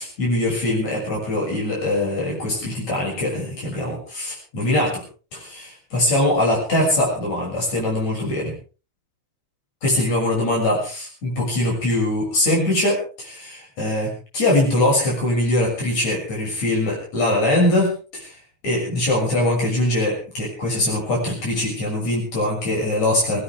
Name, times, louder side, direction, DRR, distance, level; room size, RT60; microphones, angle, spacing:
voice 1, 0.0-5.0 5.3-8.5 9.8-18.3 18.6-23.4, left 1 dB, 70° left, -2 dB, 7.9 m, -22 dB
21.0 x 18.0 x 3.5 m, 0.36 s
omnidirectional pair, 3.3 m